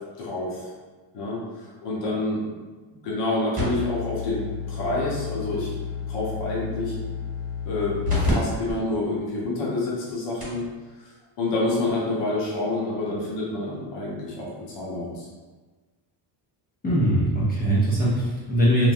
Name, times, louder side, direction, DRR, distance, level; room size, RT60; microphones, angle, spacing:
voice 1, 0.2-0.7 1.1-1.4 1.8-2.4 3.0-5.7 6.1-7.0 7.7-10.6 11.4-15.3, left 2 dB, 60° left, -6 dB, 1.0 m, -28 dB
sound 1, 3.5-8.3 8.7-8.8 9.4-9.5 10.1-10.2 10.4-10.7 11.9-12.0, left 4 dB, 15° right, 1.2 m, -30 dB
voice 2, 16.8-18.9, right 1 dB, 20° left, -6 dB, 0.4 m, -21 dB
3.1 x 2.2 x 2.5 m, 1.3 s
cardioid pair, 145°, 48 cm